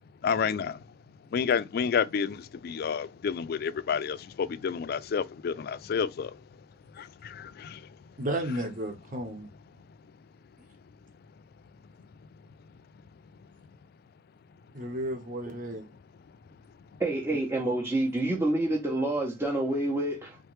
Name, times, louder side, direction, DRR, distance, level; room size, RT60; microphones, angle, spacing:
voice 1, 0.2-0.8 1.3-6.3 7.7-7.8, left 6 dB, 55° left, 0.3 m, -29 dB
voice 2, 8.2-9.5 14.7-15.9, right 1 dB, 45° right, 1.2 m, -33 dB
voice 3, 17.0-20.4, right 1 dB, 15° right, 0.8 m, -28 dB
3.8 x 3.2 x 3.2 m
head